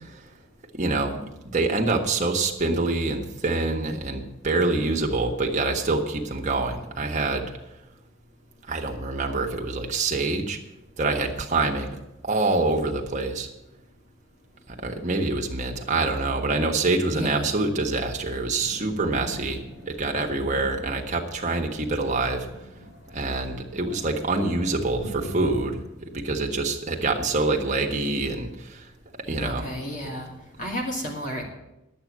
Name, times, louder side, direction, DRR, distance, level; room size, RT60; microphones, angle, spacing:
voice 1, 0.7-1.2 1.5-7.5 8.7-10.6 11.0-11.9 12.2-13.5 14.7-22.5 23.1-28.9 29.3-29.7, right 3 dB, 35° right, 1 dB, 1.4 m, -26 dB
voice 2, 17.1-17.5 29.4-30.3 30.6-31.4, equal, 35° left, 0 dB, 2.3 m, -32 dB
Thunder, 18.6-25.8, equal, 60° left, 2.7 m, -42 dB
10.5 x 8.6 x 7.4 m, 0.94 s
head